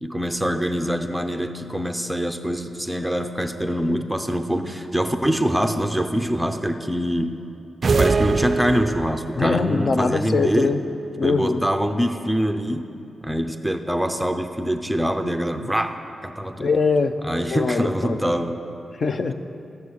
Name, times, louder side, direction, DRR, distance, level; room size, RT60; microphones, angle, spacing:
voice 1, 0.0-7.4 8.0-10.7 11.2-12.9 13.2-16.7 17.2-18.6, equal, ahead, 7 dB, 0.6 m, -24 dB
sound 1, 7.8-9.4, right 4 dB, 40° right, 0.4 m, -22 dB
voice 2, 9.4-10.8 11.2-11.6 16.6-17.1 17.5-18.2 19.0-19.3, left 4 dB, 40° left, 9 dB, 0.6 m, -22 dB
14.0 x 9.6 x 6.4 m, 2.6 s
wide cardioid pair, 160°, 0 cm